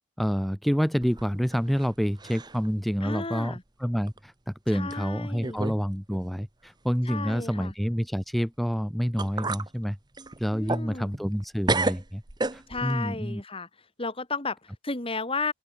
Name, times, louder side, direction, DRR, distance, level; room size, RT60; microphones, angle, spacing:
voice 1, 0.2-10.0 10.4-12.2 12.5-13.4, equal, ahead, 1.3 m, -28 dB
sound 1, 1.0-1.9 2.2-2.7 3.1-3.2 4.1-4.2 4.9-5.0 5.4-5.8 6.1-6.2 8.7-8.8 9.2-9.7 10.1-11.4 11.7-13.0, right 2 dB, 20° right, 1.0 m, -31 dB
voice 2, 3.0-3.6 4.7-5.7 7.1-7.7 10.5-11.1 12.7-13.7 14.0-15.5, left 3 dB, 25° left, 2.2 m, -33 dB
open air
head